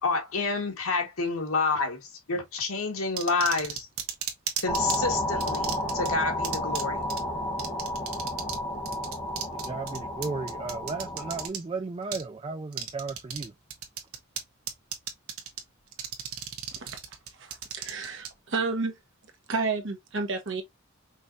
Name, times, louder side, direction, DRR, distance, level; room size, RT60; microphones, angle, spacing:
voice 1, 0.0-3.9 4.6-7.0, left 3 dB, 90° left, 1.5 m, -29 dB
sound 1, 3.2-5.0 5.4-6.1 6.4-6.8 7.1-7.2 7.6-8.6 8.9-11.6 12.1-12.2 12.7-13.5 13.7-14.4 14.7-15.6 15.9-18.3, right 8 dB, 80° right, 1.2 m, -34 dB
sound 2, 4.7-11.5, left 1 dB, 20° left, 1.4 m, -31 dB
voice 2, 9.5-13.5, right 3 dB, 25° right, 0.3 m, -35 dB
voice 3, 17.4-19.0 19.5-20.6, right 4 dB, 60° right, 1.2 m, -31 dB
5.4 x 3.1 x 2.7 m
head